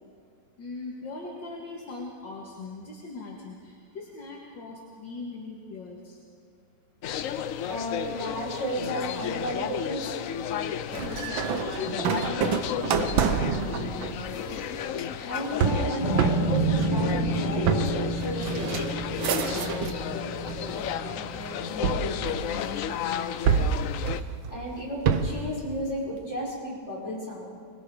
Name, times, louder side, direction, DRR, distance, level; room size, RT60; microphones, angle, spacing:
voice 1, 0.6-6.2 11.0-14.2 19.5-23.4, left 4 dB, 65° left, -2 dB, 2.5 m, -40 dB
sound 1, 7.0-24.2, left 9 dB, 90° left, 0.7 m, -33 dB
voice 2, 7.7-10.1 15.2-18.8 24.5-27.5, equal, 30° left, -5 dB, 6.2 m, -33 dB
sound 2, 10.9-20.1 20.5-21.1 21.8-22.9 23.5-25.5, right 6 dB, 75° right, 1.7 m, -28 dB
sound 3, 16.0-22.6, right 2 dB, 20° right, 3.0 m, -30 dB
25.5 x 21.5 x 4.9 m, 2.2 s
omnidirectional pair, 2.2 m